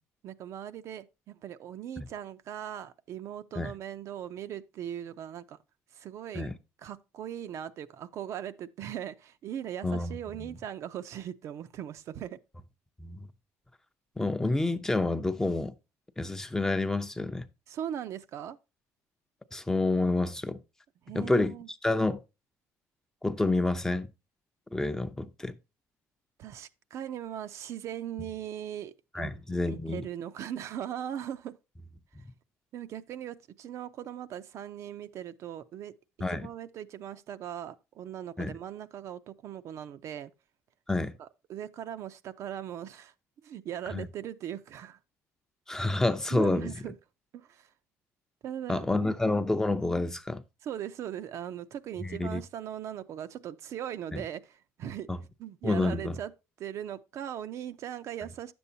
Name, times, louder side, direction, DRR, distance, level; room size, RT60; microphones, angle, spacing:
voice 1, 0.2-5.6 5.9-6.5 6.8-12.4 17.7-18.6 21.1-21.7 26.4-31.6 32.7-35.9 36.3-40.3 41.2-43.1 43.4-45.0 46.3-47.0 47.3-47.7 48.4-49.2 50.6-55.1 55.4-56.3 56.6-58.5, right 10 dB, 60° right, 0.5 m, -39 dB
voice 2, 9.8-10.5 13.0-13.2 14.2-15.7 16.2-17.5 19.5-20.6 21.1-21.5 21.8-22.2 23.2-24.1 24.7-25.6 29.1-30.1 36.2-36.5 38.4-38.5 40.9-41.1 43.9-44.1 45.7-46.7 48.7-50.4 52.0-52.4 54.1-54.2 55.1-55.2 55.6-56.2, left 2 dB, 10° left, 0.5 m, -28 dB
9.7 x 7.0 x 2.7 m
cardioid pair, 110°, 6 cm